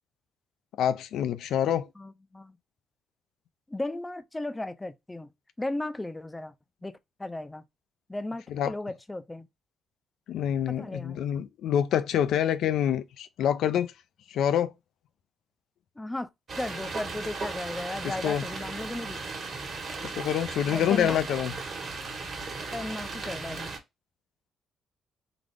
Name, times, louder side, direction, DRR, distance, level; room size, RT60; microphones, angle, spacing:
voice 1, 0.8-1.9 8.5-8.7 10.3-13.9 14.3-14.7 18.0-18.4 20.2-21.5, left 10 dB, 80° left, 0.4 m, -26 dB
voice 2, 2.0-2.6 3.7-5.3 5.6-6.5 6.8-7.6 8.1-9.5 10.7-11.2 16.0-16.3 16.6-19.2 20.7-21.2 22.7-23.7, left 2 dB, 15° left, 0.4 m, -35 dB
sound 1, 16.5-23.8, right 3 dB, 50° right, 1.3 m, -36 dB
3.8 x 2.4 x 3.3 m
cardioid pair, 90°, 0 cm